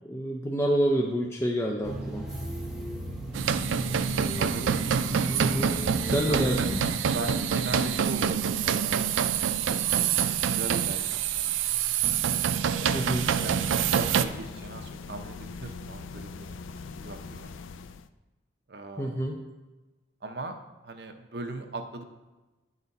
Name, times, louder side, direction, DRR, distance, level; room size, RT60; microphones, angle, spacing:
voice 1, 0.1-2.2 5.4-5.7 6.1-6.8 12.9-13.2 19.0-19.4, equal, 15° left, 0 dB, 0.4 m, -28 dB
sound 1, 1.8-6.8, right 1 dB, 5° right, 0.9 m, -35 dB
sound 2, 3.3-14.2, right 7 dB, 85° right, 0.4 m, -26 dB
voice 2, 4.4-4.7 6.1-6.7 7.0-9.3 10.2-11.2 12.4-16.6 17.0-17.5 18.7-19.3 20.2-20.6 20.8-22.0, right 3 dB, 55° right, 5 dB, 0.7 m, -39 dB
sound 3, 12.8-18.1, left 4 dB, 90° left, 0.3 m, -41 dB
10.0 x 4.0 x 4.0 m, 1.1 s
head